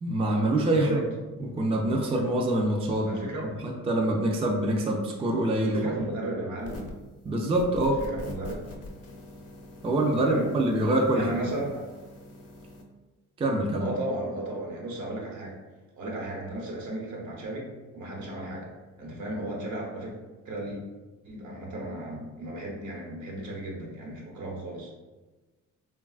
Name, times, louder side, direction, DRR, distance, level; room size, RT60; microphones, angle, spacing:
voice 1, 0.0-1.0 1.4-3.1 3.6-5.8 7.2-8.0 9.8-11.5 13.4-13.9, right 1 dB, 20° right, 0 dB, 0.4 m, -25 dB
voice 2, 0.7-1.0 3.0-3.5 5.7-6.8 8.0-8.6 10.0-10.5 11.1-11.8 13.8-15.6 16.0-17.7 17.9-18.7 19.0-20.1 20.4-20.8 21.2-24.9, right 1 dB, 75° right, -3 dB, 1.0 m, -35 dB
sound 1, 6.6-7.1 7.5-12.8, left 1 dB, 50° left, 0.6 m, -44 dB
3.2 x 2.3 x 2.3 m, 1.2 s
cardioid pair, 90°, 30 cm